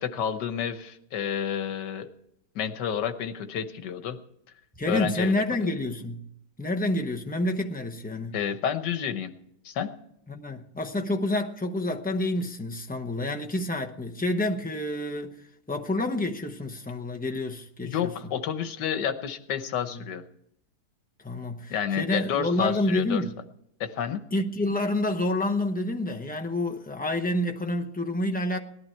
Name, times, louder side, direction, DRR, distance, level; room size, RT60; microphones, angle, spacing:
voice 1, 0.0-2.1 2.5-4.2 4.9-5.7 8.3-9.3 9.6-9.9 17.8-20.2 21.7-23.2 23.8-24.2, left 8 dB, 90° left, 1.6 m, -30 dB
voice 2, 4.8-6.3 6.6-8.3 10.3-18.1 19.9-20.1 21.2-23.3 24.3-28.6, left 1 dB, 10° left, 0.4 m, -28 dB
18.0 x 11.5 x 4.5 m
omnidirectional pair, 1.8 m